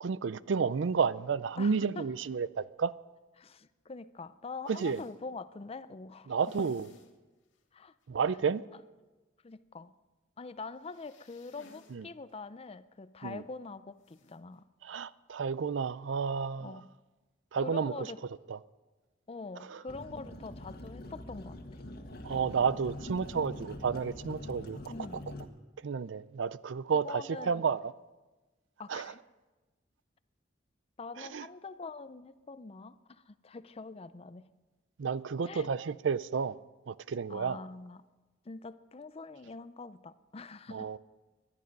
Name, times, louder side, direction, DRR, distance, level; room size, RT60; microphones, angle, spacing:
voice 1, 0.0-2.9 4.7-5.0 6.3-6.9 8.1-8.6 11.9-12.0 13.2-13.4 14.8-16.8 17.5-18.1 18.5-18.6 19.7-19.8 22.2-24.8 25.8-27.9 28.9-29.1 31.2-31.5 35.0-36.5 36.9-37.6 40.7-41.0, right 5 dB, 70° right, 0.4 m, -31 dB
voice 2, 1.6-2.1 3.4-6.7 7.7-7.9 9.4-9.9 10.4-14.6 16.6-16.9 17.6-18.2 19.3-21.6 24.9-25.3 27.0-27.5 28.8-29.2 31.0-34.5 35.5-35.7 37.3-38.0 38.5-40.9, left 3 dB, 30° left, 0.5 m, -44 dB
sound 1, 4.6-5.2 6.4-7.1 7.5-7.6 8.0-8.1 10.8-12.0 12.3-12.4 14.0-14.4, left 3 dB, 80° left, 1.8 m, -59 dB
sound 2, 19.9-25.4, left 1 dB, 55° left, 1.6 m, -44 dB
20.5 x 12.0 x 5.3 m
head